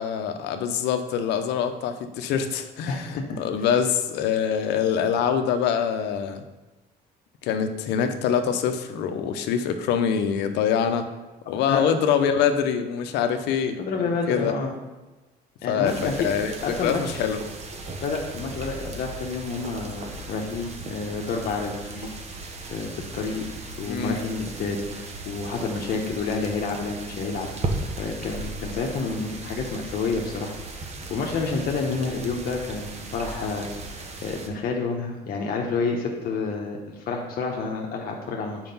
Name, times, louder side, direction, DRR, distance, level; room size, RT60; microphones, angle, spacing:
voice 1, 0.0-6.4 7.4-11.1 11.5-14.5 15.7-17.4 23.8-24.2, left 7 dB, 85° left, 7 dB, 0.7 m, -25 dB
voice 2, 2.9-3.4 11.7-11.8 13.8-14.7 15.6-16.3 16.6-17.2 18.0-22.2 22.7-27.5 28.0-38.6, left 4 dB, 60° left, 0 dB, 0.9 m, -29 dB
sound 1, 15.8-34.5, right 2 dB, 40° right, 1.0 m, -37 dB
5.8 x 4.8 x 5.4 m, 1.1 s
cardioid pair, 110°, 17 cm